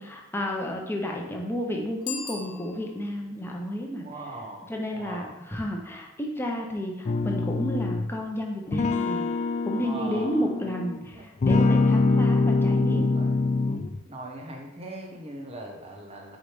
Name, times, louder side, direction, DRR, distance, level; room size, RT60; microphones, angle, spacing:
voice 1, 0.0-4.1 4.7-9.2 9.6-13.1, equal, 10° left, 0 dB, 0.8 m, -31 dB
Bicycle bell, 2.0-3.2, left 6 dB, 75° left, 0.9 m, -38 dB
voice 2, 4.0-5.5 9.8-10.7 11.1-11.2 12.9-13.3 14.1-16.4, right 2 dB, 30° right, 1 dB, 1.0 m, -40 dB
sound 1, 7.1-8.1 8.7-11.0 11.4-14.0, left 3 dB, 35° left, 0.3 m, -24 dB
4.8 x 4.0 x 4.9 m, 1.0 s
head